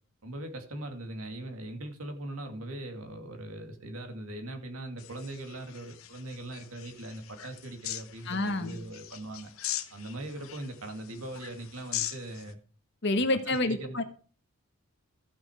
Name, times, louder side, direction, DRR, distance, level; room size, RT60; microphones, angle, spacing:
voice 1, 0.2-9.5 9.9-12.6 13.5-14.0, right 1 dB, 80° right, 2.3 m, -40 dB
sound 1, 5.0-12.5, left 12 dB, 70° left, 1.0 m, -41 dB
voice 2, 8.3-8.8 13.0-14.0, left 2 dB, 50° left, 1.2 m, -28 dB
14.0 x 6.1 x 4.9 m
head